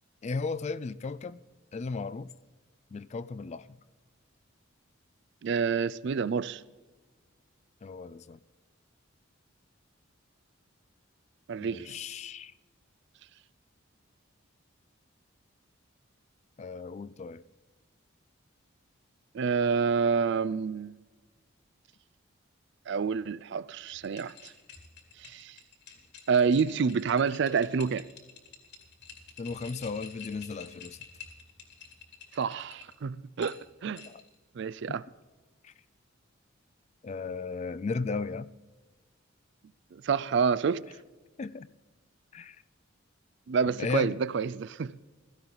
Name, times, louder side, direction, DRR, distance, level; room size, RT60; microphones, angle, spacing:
voice 1, 0.2-1.4 1.7-2.3 2.9-3.7 7.8-8.4 11.6-12.5 16.6-17.4 29.4-31.0 34.0-34.2 34.9-35.0 35.6-35.7 37.0-38.5 41.4-41.7 42.3-42.6 43.7-44.2, left 4 dB, 35° left, 0.3 m, -35 dB
voice 2, 5.4-6.6 11.5-12.0 19.3-20.9 22.9-24.5 25.2-25.5 26.3-28.1 32.3-34.0 34.6-35.0 39.9-40.8 43.5-44.9, right 6 dB, 60° right, 0.4 m, -28 dB
sound 1, 23.8-32.9 33.4-34.4, left 6 dB, 55° left, 2.3 m, -49 dB
16.0 x 14.0 x 4.0 m
head